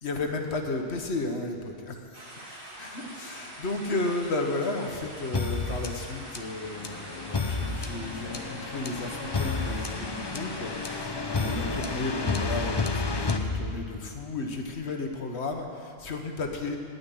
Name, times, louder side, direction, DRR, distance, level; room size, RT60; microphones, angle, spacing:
voice 1, 0.0-2.5 2.8-16.8, left 2 dB, 85° left, 3 dB, 1.5 m, -33 dB
sound 1, 2.1-11.1, right 1 dB, 55° right, 2.2 m, -44 dB
sound 2, 5.3-14.2, left 3 dB, 30° left, 0.6 m, -31 dB
9.6 x 9.1 x 9.8 m, 2.3 s
omnidirectional pair, 1.1 m